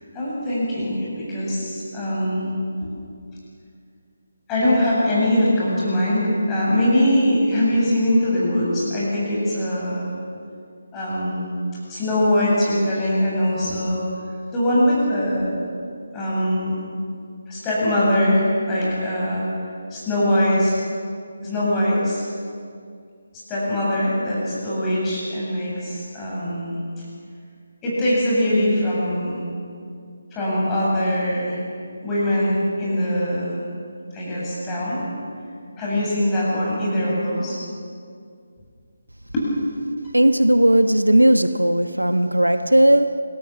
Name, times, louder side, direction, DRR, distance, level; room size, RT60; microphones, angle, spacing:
voice 1, 0.1-2.9 4.5-10.1 10.9-11.6 11.9-14.0 14.5-15.7 16.1-16.8 17.5-19.5 19.9-20.7 21.4-22.2 23.3-26.7 27.8-29.5 30.3-31.6 32.0-33.6 34.1-35.1 35.8-37.6 39.3-39.4, left 1 dB, 15° left, -7 dB, 7.9 m, -22 dB
voice 2, 40.1-43.2, right 1 dB, 80° right, 10 dB, 1.1 m, -16 dB
27.5 x 18.5 x 7.4 m, 2.3 s
figure-of-eight pair, 150°, 0 cm